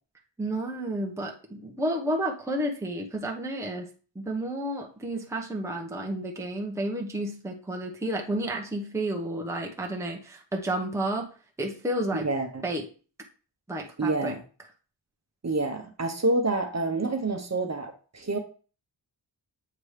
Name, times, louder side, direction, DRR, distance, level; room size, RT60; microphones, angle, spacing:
voice 1, 0.4-3.9 4.1-11.3 11.6-12.3 12.6-12.9 13.7-14.3, right 1 dB, 5° right, 0 dB, 0.9 m, -31 dB
voice 2, 12.1-12.6 14.0-14.4 15.4-18.4, right 2 dB, 35° right, 4 dB, 1.1 m, -28 dB
7.8 x 3.0 x 5.0 m, 0.37 s
wide cardioid pair, 145°, 44 cm